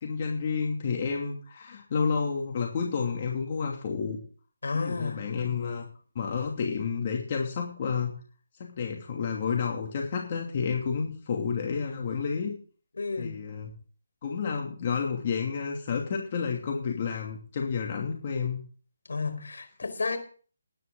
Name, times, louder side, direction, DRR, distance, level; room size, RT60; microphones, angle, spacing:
voice 1, 0.0-4.2 4.7-5.8 6.1-8.1 8.6-12.5 13.2-13.7 14.2-18.6, left 5 dB, 40° left, 0 dB, 2.7 m, -30 dB
voice 2, 4.6-5.3 13.0-13.4 19.1-20.2, left 4 dB, 75° left, 8 dB, 4.7 m, -32 dB
19.5 x 10.0 x 3.9 m, 0.42 s
figure-of-eight pair, 160°, 0 cm